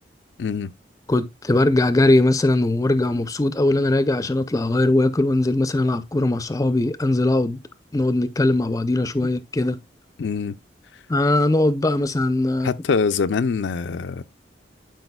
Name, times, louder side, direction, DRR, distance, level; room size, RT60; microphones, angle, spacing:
voice 1, 0.4-0.7 10.2-10.6 12.6-14.2, left 5 dB, 80° left, 0.4 m, -24 dB
voice 2, 1.1-7.6 7.9-9.8 11.1-12.7, left 2 dB, 20° left, 0.5 m, -20 dB
12.0 x 4.8 x 2.2 m
head